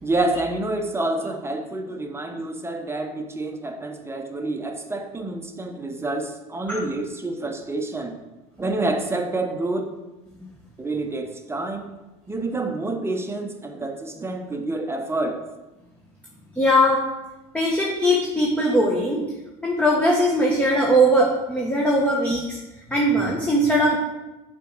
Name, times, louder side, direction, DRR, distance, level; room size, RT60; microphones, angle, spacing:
voice 1, 0.0-8.2 8.6-9.9 10.8-11.9 12.3-15.4, right 2 dB, 15° right, 4 dB, 1.1 m, -28 dB
voice 2, 16.5-17.0 17.5-19.2 19.6-22.6 22.9-24.0, equal, 5° left, -3 dB, 1.4 m, -20 dB
6.7 x 4.4 x 6.3 m, 1.1 s
supercardioid pair, 90°, 17 cm